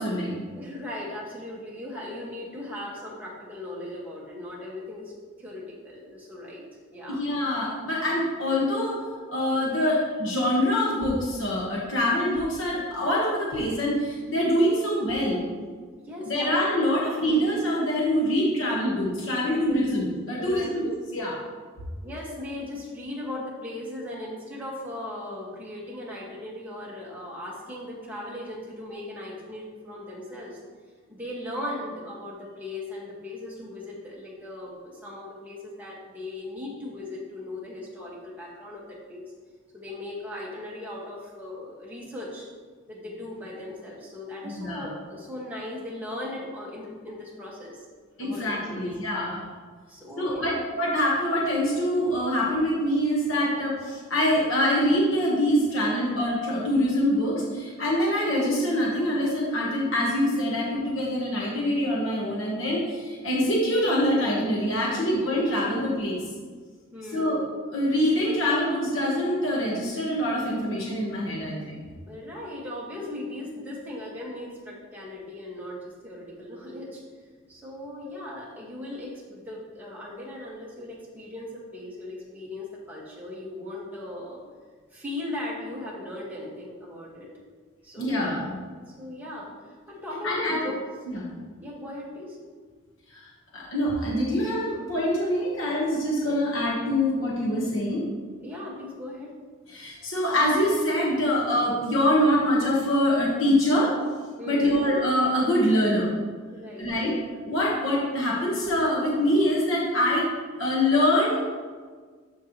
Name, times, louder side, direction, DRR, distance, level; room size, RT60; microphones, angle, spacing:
voice 1, 0.0-0.4 7.1-9.0 9.3-15.4 16.3-21.4 44.4-44.9 48.2-49.4 50.2-66.2 67.1-67.4 67.7-71.8 88.0-88.6 90.2-90.6 91.1-91.3 93.1-98.0 99.7-103.9 104.4-106.1 106.8-107.1 107.5-110.3 110.6-111.4, left 1 dB, 80° left, -4 dB, 1.5 m, -25 dB
voice 2, 0.5-5.1 5.4-6.6 6.9-7.2 16.0-16.5 17.2-17.4 19.5-19.8 20.3-20.7 22.0-30.6 31.1-39.3 39.7-42.5 42.9-47.8 48.2-48.9 49.9-50.6 64.8-65.2 66.9-67.4 72.1-77.0 77.5-84.4 84.9-87.3 87.8-88.5 88.9-90.8 91.6-92.4 98.4-99.3 104.4-104.8 106.5-106.9, left 1 dB, 10° right, -5 dB, 1.8 m, -38 dB
13.0 x 4.6 x 3.2 m, 1.5 s
head